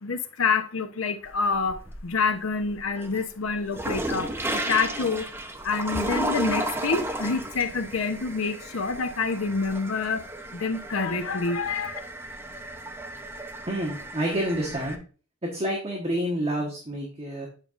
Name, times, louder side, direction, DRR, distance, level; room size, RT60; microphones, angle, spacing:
voice 1, 0.0-4.3 4.7-5.3 5.6-10.2 10.5-12.0, left 4 dB, 85° left, 0.8 m, -27 dB
sound 1, 1.2-2.2 2.6-15.0, right 1 dB, 10° right, 0.7 m, -34 dB
voice 2, 13.7-15.0 15.4-17.5, right 1 dB, 30° right, 1.2 m, -28 dB
9.0 x 5.3 x 2.5 m
head